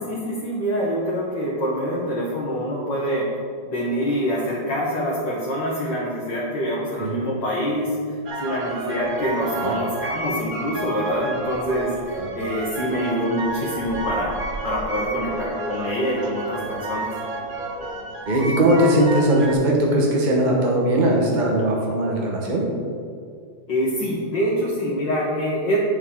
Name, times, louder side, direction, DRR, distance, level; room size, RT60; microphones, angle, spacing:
voice 1, 0.0-3.3 3.7-17.1 23.7-25.8, equal, 60° left, -6 dB, 1.9 m, -25 dB
sound 1, 8.3-19.5, right 2 dB, 70° right, 0.4 m, -31 dB
voice 2, 18.3-22.6, right 1 dB, 30° right, -2 dB, 0.9 m, -19 dB
9.0 x 7.1 x 3.7 m, 2.4 s
omnidirectional pair, 2.3 m